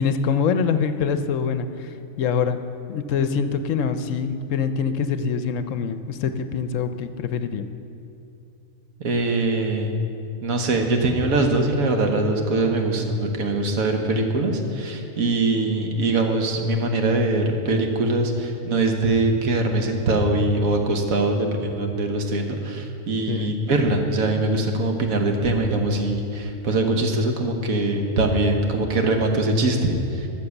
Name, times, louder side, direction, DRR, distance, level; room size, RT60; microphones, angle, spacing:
voice 1, 0.0-1.9 2.2-2.6 2.9-7.6 23.3-23.5, left 6 dB, 70° left, 10 dB, 0.9 m, -24 dB
voice 2, 9.0-9.9 10.4-30.3, right 2 dB, 85° right, 3 dB, 1.5 m, -22 dB
13.0 x 6.8 x 7.1 m, 2.7 s
omnidirectional pair, 1.4 m